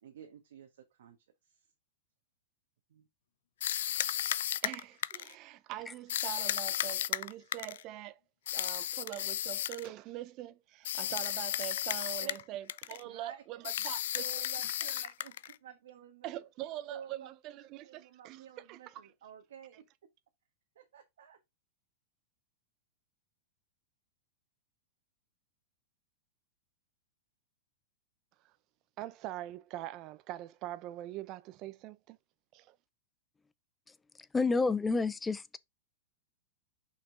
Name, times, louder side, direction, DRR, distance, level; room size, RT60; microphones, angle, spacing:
voice 1, 0.0-1.2 1.4-1.6 2.9-3.1 12.2-12.4 13.0-13.4 14.2-16.3 16.9-19.9 20.7-21.4, right 9 dB, 80° right, 1.3 m, -51 dB
sound 1, 3.6-5.3 6.1-7.8 8.5-9.9 10.8-12.4 12.7-13.0 13.6-15.6, left 11 dB, 75° left, 0.4 m, -34 dB
voice 2, 4.6-8.2 8.5-15.1 16.2-19.0 29.0-32.2 32.5-32.8, right 14 dB, 45° right, 0.7 m, -43 dB
voice 3, 34.3-35.6, left 4 dB, 10° left, 0.5 m, -29 dB
5.8 x 4.4 x 3.8 m
hypercardioid pair, 120°, 0 cm